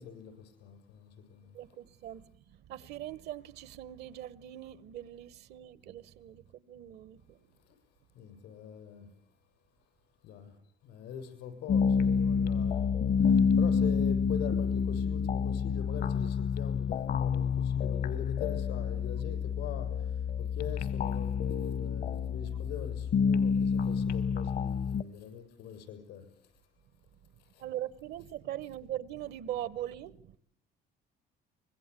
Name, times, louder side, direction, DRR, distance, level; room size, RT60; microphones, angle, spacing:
voice 1, 0.0-1.5 7.7-7.8 8.2-9.1 10.2-10.6 10.8-26.3 27.4-27.6, left 8 dB, 85° left, 7.0 m, -43 dB
voice 2, 1.5-2.3 2.6-7.4 27.6-30.4, right 12 dB, 75° right, 1.0 m, -41 dB
sound 1, 11.7-25.0, left 6 dB, 60° left, 1.0 m, -28 dB
24.5 x 20.5 x 8.3 m
cardioid pair, 110°, 17 cm